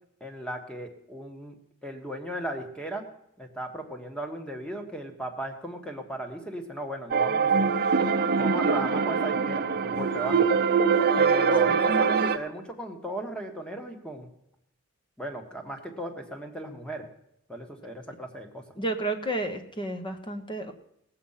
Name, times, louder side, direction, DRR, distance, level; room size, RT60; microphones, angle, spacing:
voice 1, 0.2-1.6 1.8-3.0 3.4-7.7 8.3-10.4 11.2-14.3 15.2-17.1 17.5-18.6, right 1 dB, 5° left, 4 dB, 1.4 m, -36 dB
sound 1, 7.1-12.4, right 5 dB, 45° right, 0.7 m, -23 dB
voice 2, 18.8-20.7, right 2 dB, 20° left, 7 dB, 1.1 m, -31 dB
17.5 x 7.7 x 5.7 m, 0.79 s
head